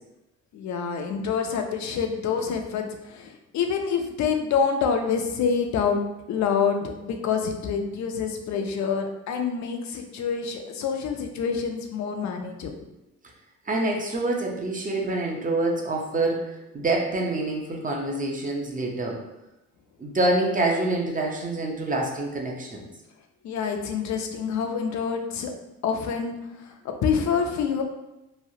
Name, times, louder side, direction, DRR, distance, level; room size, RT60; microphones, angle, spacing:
voice 1, 0.5-6.0 6.3-12.7 23.4-25.5 25.8-26.4 26.8-27.8, left 6 dB, 65° left, 4 dB, 0.5 m, -27 dB
voice 2, 13.7-19.2 20.0-22.9, right 2 dB, 25° right, 0 dB, 0.6 m, -26 dB
3.1 x 2.3 x 2.7 m, 0.95 s
cardioid pair, 90°, 30 cm